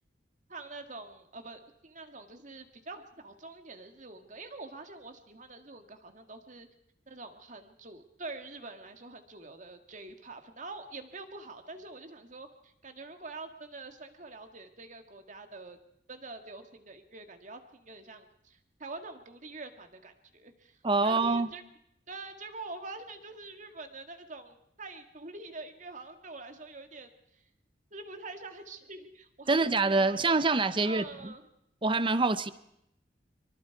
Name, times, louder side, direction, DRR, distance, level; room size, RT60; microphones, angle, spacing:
voice 1, 0.5-6.7 7.1-15.8 16.1-21.6 22.1-27.4 27.9-30.2 30.8-31.5, right 3 dB, 45° right, 6 dB, 2.0 m, -45 dB
voice 2, 20.8-21.5 29.5-31.3 31.8-32.5, right 3 dB, 30° right, 14 dB, 0.8 m, -26 dB
24.5 x 24.0 x 4.7 m, 0.78 s
head